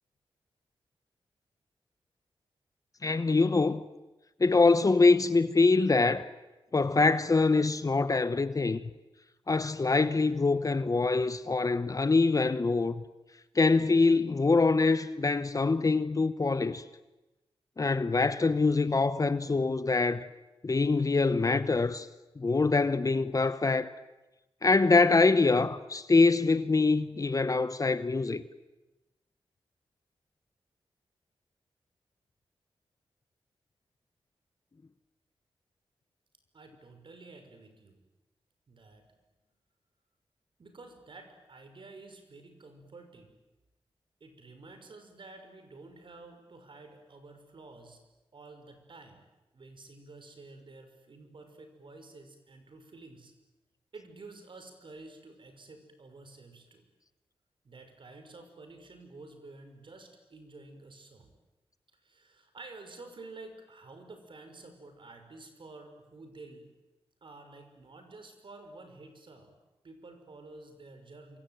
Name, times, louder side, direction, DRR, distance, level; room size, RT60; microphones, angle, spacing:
voice 1, 3.0-3.8 4.4-6.3 6.7-8.8 9.5-13.0 13.5-16.8 17.8-20.3 20.6-22.1 22.4-23.9 24.6-28.4, left 3 dB, 35° left, 1.0 m, -24 dB
voice 2, 36.5-38.0 38.7-39.0 40.6-43.3 44.2-48.0 48.3-49.2 49.5-53.3 53.9-56.8 57.6-61.3 62.0-66.7 67.2-69.5 69.8-71.4, right 3 dB, 55° right, 5.7 m, -50 dB
27.5 x 24.0 x 9.2 m
wide cardioid pair, 85°, 10 cm